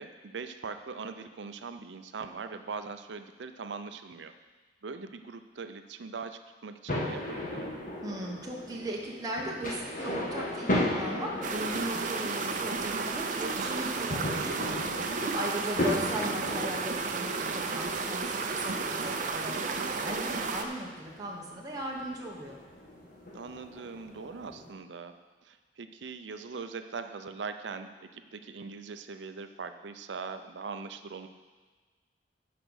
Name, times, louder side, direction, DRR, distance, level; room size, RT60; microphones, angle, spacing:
voice 1, 0.0-4.4 4.8-7.7 15.5-15.7 23.3-31.3, right 4 dB, 90° right, 9 dB, 0.6 m, -41 dB
sound 1, 6.9-24.7, left 1 dB, 50° left, 1.6 m, -37 dB
voice 2, 8.0-22.6, right 1 dB, 20° right, -2 dB, 1.1 m, -38 dB
sound 2, 11.4-20.6, right 4 dB, 50° right, 0.7 m, -32 dB
10.0 x 5.1 x 6.3 m, 1.4 s
head